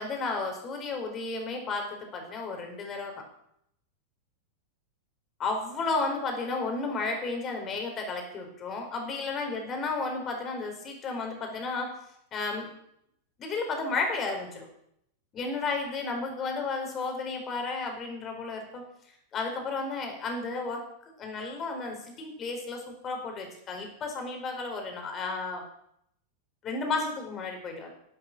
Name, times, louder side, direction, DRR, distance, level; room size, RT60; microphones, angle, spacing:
voice 1, 0.0-3.2 5.4-11.9 12.3-12.7 13.4-14.7 15.3-18.8 19.3-20.8 21.2-25.6 26.6-27.9, left 3 dB, 30° left, 4 dB, 4.7 m, -33 dB
12.0 x 10.5 x 7.6 m, 0.74 s
figure-of-eight pair, 90°, 0 cm